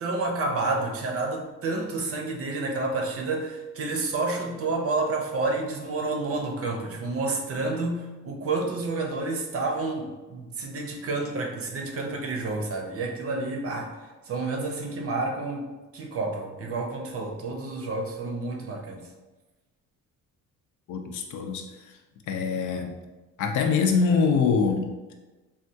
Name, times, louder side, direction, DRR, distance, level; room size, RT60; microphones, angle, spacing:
voice 1, 0.0-13.9 14.3-19.0, right 3 dB, 45° right, 2 dB, 0.6 m, -29 dB
voice 2, 20.9-21.7 22.3-22.9 23.4-25.1, left 5 dB, 65° left, 4 dB, 0.5 m, -24 dB
3.5 x 2.3 x 2.7 m, 1.2 s
cardioid pair, 120°, 32 cm